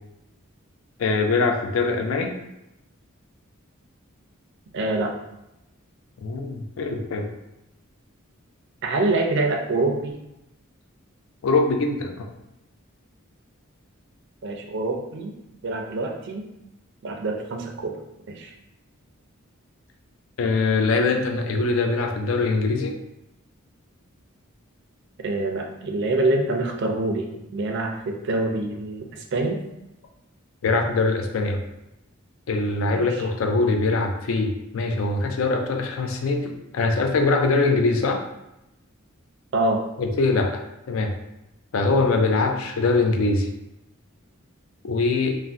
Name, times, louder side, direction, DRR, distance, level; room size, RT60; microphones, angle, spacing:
voice 1, 1.0-2.3 6.2-7.3 11.4-12.3 20.4-22.9 30.6-31.6 32.5-38.2 40.0-40.6 40.9-41.1 41.7-43.5 44.8-45.4, left 3 dB, 70° left, 3 dB, 0.4 m, -22 dB
voice 2, 4.7-5.1 8.8-10.2 14.4-15.3 15.6-16.5 17.0-18.0 18.4-18.5 25.2-29.6 33.0-33.1 39.5-39.8, right 2 dB, 55° right, 3 dB, 0.4 m, -25 dB
2.5 x 2.0 x 3.3 m, 0.89 s
head